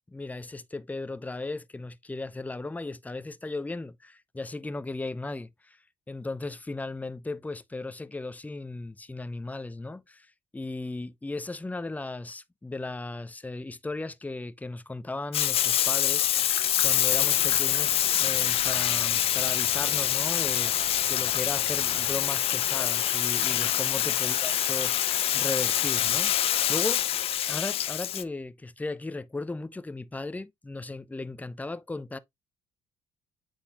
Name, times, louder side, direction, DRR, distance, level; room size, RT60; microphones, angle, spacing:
voice 1, 0.1-5.8 6.1-10.3 10.5-20.7 21.1-27.1 27.5-32.2, left 2 dB, 15° left, 0.7 m, -36 dB
Bathtub (filling or washing), 15.3-28.2, left 11 dB, 60° left, 0.5 m, -25 dB
sound 1, 17.1-22.2, right 9 dB, 70° right, 0.8 m, -47 dB
8.1 x 4.1 x 2.9 m
hypercardioid pair, 55°, 11 cm